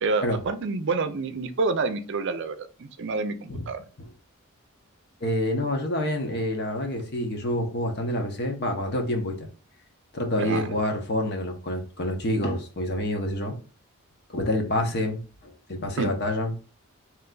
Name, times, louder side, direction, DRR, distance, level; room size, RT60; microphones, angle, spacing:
voice 1, 0.0-3.8 10.4-10.7 16.0-16.1, right 3 dB, 55° right, 0.5 m, -28 dB
voice 2, 5.2-9.5 10.1-13.5 14.3-16.5, left 1 dB, 50° left, 1.0 m, -27 dB
3.3 x 3.1 x 3.8 m
head